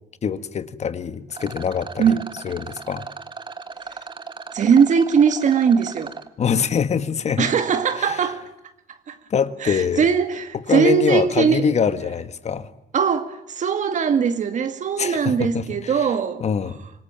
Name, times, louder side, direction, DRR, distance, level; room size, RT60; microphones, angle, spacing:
voice 1, 0.2-2.2 2.4-3.0 6.4-7.5 8.0-8.3 9.3-10.1 10.7-12.7 15.0-16.1 16.4-16.8, left 7 dB, 40° left, 1.7 m, -24 dB
Rattle, 1.3-6.3, right 5 dB, 30° right, 1.9 m, -37 dB
voice 2, 4.5-6.2 7.4-8.5 9.1-9.2 9.6-11.7 12.9-16.4, right 6 dB, 45° right, 2.1 m, -20 dB
26.5 x 19.5 x 9.0 m
cardioid pair, 110°, 17 cm